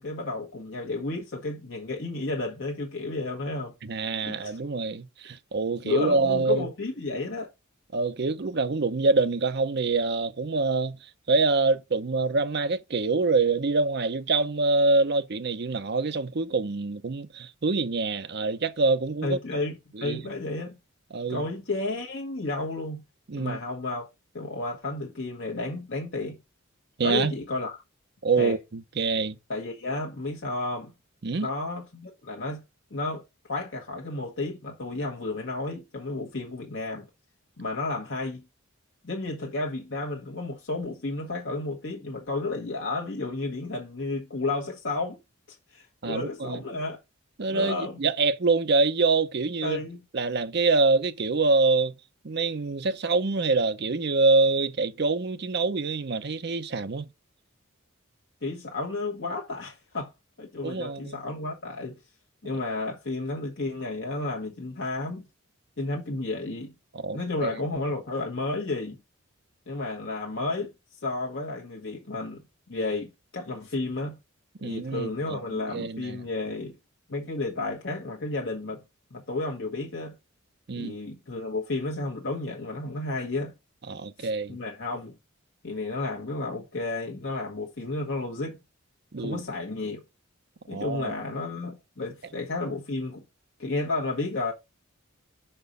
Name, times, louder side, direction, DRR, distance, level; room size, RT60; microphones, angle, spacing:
voice 1, 0.0-4.6 5.8-7.5 19.2-20.8 21.3-23.0 23.3-24.1 24.3-26.4 27.0-27.8 28.4-28.6 29.5-30.9 31.3-32.6 32.9-33.2 33.5-37.1 37.6-38.4 39.0-45.2 45.7-47.0 47.5-48.0 49.6-50.0 58.4-60.1 60.4-61.9 62.4-65.2 65.8-66.7 67.1-69.0 69.7-70.7 71.0-74.2 74.6-76.7 77.1-78.8 79.1-80.1 80.8-83.5 84.2-85.1 85.6-88.6 89.2-90.0 90.7-93.2 93.6-94.5, left 2 dB, 55° left, 1.2 m, -32 dB
voice 2, 3.8-6.7 7.9-11.0 11.3-19.4 19.9-20.2 21.1-21.5 23.3-23.6 27.0-27.3 28.2-29.4 31.2-31.5 46.0-46.6 47.4-49.8 50.1-51.9 52.2-57.1 60.6-61.2 66.9-67.6 74.6-75.4 75.7-76.2 80.7-81.0 83.9-84.6 89.1-89.4 90.7-91.1, right 3 dB, 50° right, 0.6 m, -25 dB
5.6 x 4.4 x 5.1 m
head